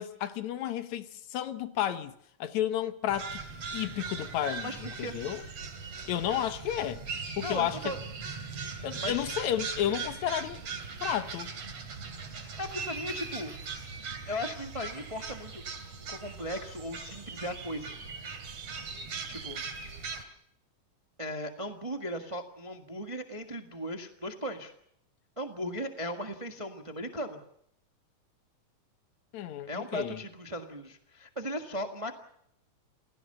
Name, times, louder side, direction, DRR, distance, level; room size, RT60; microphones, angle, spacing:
voice 1, 0.0-2.1 2.4-3.4 3.7-5.4 6.1-7.1 7.4-7.9 8.8-10.6 11.0-11.5 29.3-30.2, left 11 dB, 70° left, 2.3 m, -32 dB
sound 1, 3.1-20.2, right 5 dB, 55° right, 3.4 m, -40 dB
voice 2, 4.6-5.2 7.4-8.0 9.0-9.3 12.6-13.5 14.2-15.6 16.1-17.9 19.3-19.9 21.2-24.7 25.4-27.4 29.7-32.1, equal, 15° right, 1.0 m, -37 dB
28.0 x 17.0 x 6.8 m
omnidirectional pair, 3.5 m